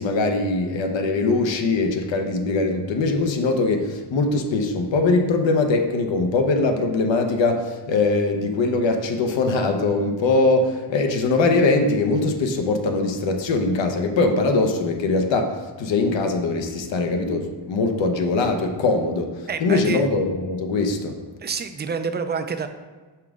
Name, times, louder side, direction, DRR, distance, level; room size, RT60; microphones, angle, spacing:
voice 1, 0.0-21.2, left 3 dB, 65° left, 4 dB, 0.9 m, -22 dB
voice 2, 19.5-20.1 21.4-22.7, right 5 dB, 25° right, 9 dB, 0.4 m, -27 dB
5.6 x 5.1 x 3.6 m, 1.3 s
cardioid pair, 100°, 48 cm